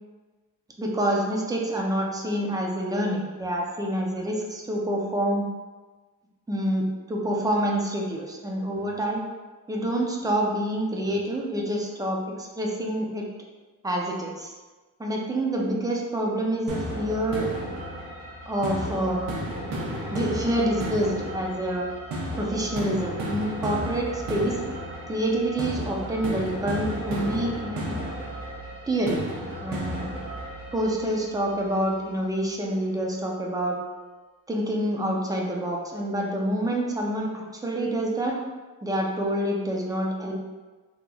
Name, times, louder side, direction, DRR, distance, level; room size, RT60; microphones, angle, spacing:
voice 1, 0.8-5.5 6.5-9.2 9.7-13.2 13.8-14.5 15.0-17.5 18.5-19.2 20.1-21.9 22.4-24.6 25.1-28.0 28.9-29.2 29.6-30.0 30.7-33.8 34.5-38.4 38.8-40.3, right 1 dB, 10° right, -1 dB, 0.5 m, -27 dB
sound 1, 16.7-31.6, equal, 80° right, 1.0 m, -33 dB
3.7 x 2.9 x 2.3 m, 1.3 s
cardioid pair, 120°, 34 cm